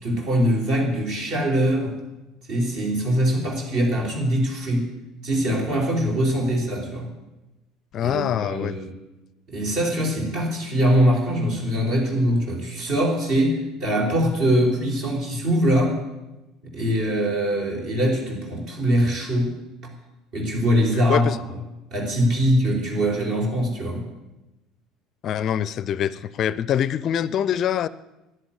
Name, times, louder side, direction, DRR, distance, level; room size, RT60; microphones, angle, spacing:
voice 1, 0.0-2.0 2.5-4.9 5.2-7.1 8.0-8.9 9.5-16.0 16.6-19.6 20.3-21.3 21.9-24.0, equal, 55° right, 1 dB, 4.5 m, -22 dB
voice 2, 7.9-8.8 21.1-21.4 25.2-27.9, left 9 dB, 45° left, 19 dB, 0.5 m, -24 dB
11.5 x 10.0 x 9.9 m, 1.0 s
figure-of-eight pair, 60°, 0 cm